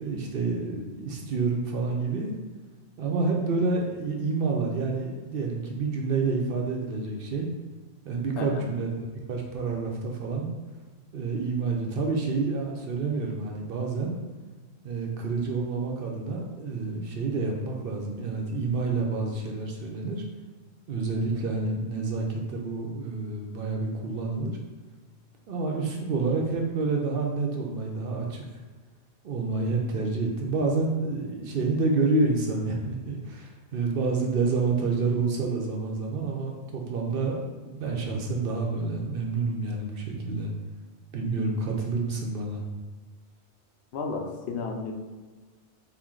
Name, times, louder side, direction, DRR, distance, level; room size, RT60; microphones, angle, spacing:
voice 1, 0.0-2.3 3.0-7.5 8.0-10.5 11.1-14.2 14.8-20.2 20.9-24.5 25.5-28.4 29.2-40.5 41.1-42.6, right 3 dB, 60° right, 0 dB, 0.7 m, -28 dB
voice 2, 43.9-44.9, left 4 dB, 75° left, 2 dB, 0.8 m, -32 dB
4.5 x 2.2 x 3.6 m, 1.4 s
omnidirectional pair, 1.2 m